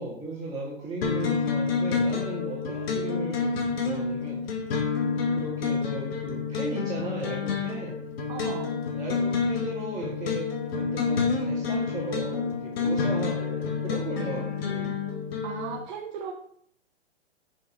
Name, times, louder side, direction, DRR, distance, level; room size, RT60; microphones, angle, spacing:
voice 1, 0.0-4.7 5.3-8.0 8.9-10.5 10.7-15.0, right 2 dB, 10° right, -7 dB, 2.0 m, -36 dB
sound 1, 1.0-15.8, left 5 dB, 55° left, 2.2 m, -28 dB
voice 2, 8.3-8.8 15.4-16.3, right 7 dB, 45° right, 2 dB, 1.1 m, -36 dB
6.9 x 5.4 x 5.6 m, 0.65 s
hypercardioid pair, 125°, 34 cm